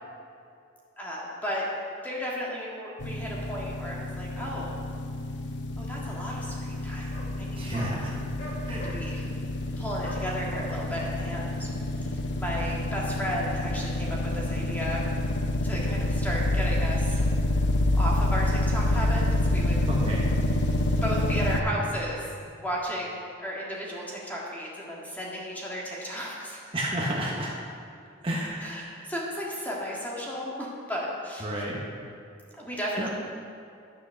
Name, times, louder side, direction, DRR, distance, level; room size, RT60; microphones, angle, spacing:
voice 1, 1.0-1.7 2.0-4.8 5.8-7.1 7.4-7.9 8.7-9.3 9.8-11.7 12.0-12.1 12.4-15.0 15.6-17.2 17.9-19.8 21.0-22.2 22.6-26.7 28.6-31.6 32.5-33.1, equal, 10° left, -5 dB, 1.8 m, -34 dB
sound 1, 3.0-21.6, left 1 dB, 60° left, 0.7 m, -28 dB
sound 2, 7.1-7.3 7.7-7.9 8.4-9.0 10.0-10.6, equal, 45° left, 2.0 m, -41 dB
voice 2, 7.6-8.1 8.6-8.9 19.9-20.2 26.7-27.5 28.2-28.9 31.4-31.8 33.0-33.1, equal, 30° right, -4 dB, 1.2 m, -31 dB
11.0 x 6.6 x 6.4 m, 2.5 s
head